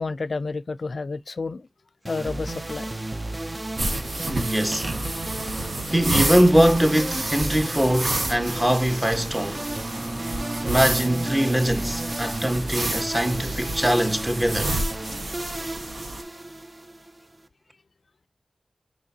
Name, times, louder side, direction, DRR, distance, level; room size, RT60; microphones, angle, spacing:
voice 1, 0.0-1.7 2.0-2.9, left 3 dB, 70° left, 0.4 m, -30 dB
sound 1, 2.0-17.4, right 1 dB, 30° right, 0.6 m, -34 dB
sound 2, 3.8-16.2, right 2 dB, 75° right, 1.5 m, -30 dB
voice 2, 4.3-4.9 5.9-9.7 10.6-14.8, equal, 15° right, 1.0 m, -22 dB
Bowed string instrument, 9.6-13.4, right 1 dB, 55° right, 0.9 m, -35 dB
5.2 x 3.6 x 2.7 m
cardioid pair, 45°, 0 cm